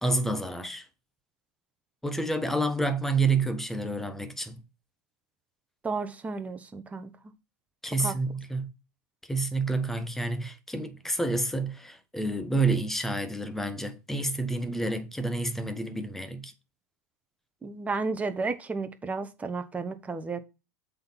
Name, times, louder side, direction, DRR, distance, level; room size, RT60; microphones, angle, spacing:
voice 1, 0.0-0.9 2.0-4.6 7.8-8.7 9.3-16.5, right 2 dB, 5° left, 1.3 m, -29 dB
voice 2, 5.8-7.1 8.0-8.1 17.6-20.4, right 4 dB, 15° right, 1.2 m, -32 dB
7.7 x 4.5 x 5.6 m
hypercardioid pair, 105°, 9 cm